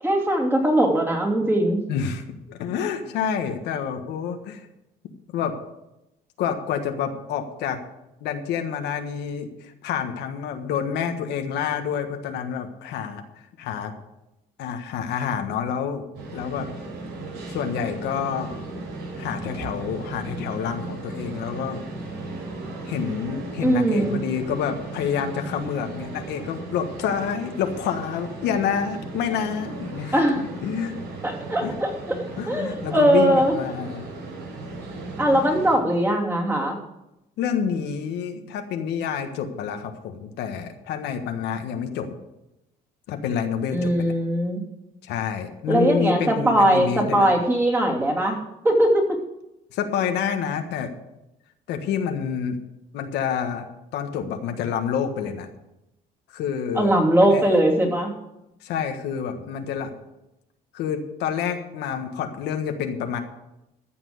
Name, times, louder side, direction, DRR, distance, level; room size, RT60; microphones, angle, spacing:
voice 1, 0.0-1.8 23.6-24.2 30.1-30.4 31.2-31.9 32.5-33.5 35.2-36.8 43.7-44.6 45.7-48.4 48.6-49.2 56.7-58.1, right 1 dB, 10° right, -1 dB, 2.9 m, -20 dB
voice 2, 1.9-4.7 5.3-5.6 6.4-7.8 8.2-13.2 13.6-13.9 14.6-16.0 16.3-16.7 17.5-18.5 19.2-21.8 22.9-30.2 30.6-30.9 31.6-31.7 32.4-34.1 37.4-42.1 43.1-44.1 45.0-47.3 49.7-50.9 51.7-52.6 52.9-53.7 53.9-55.5 56.3-56.9 57.3-57.4 58.6-59.9 60.7-63.2, left 7 dB, 80° left, 5 dB, 1.5 m, -28 dB
sound 1, 16.1-35.8, right 2 dB, 80° right, 5.9 m, -36 dB
14.0 x 6.2 x 7.9 m, 0.91 s
cardioid pair, 110°, 17 cm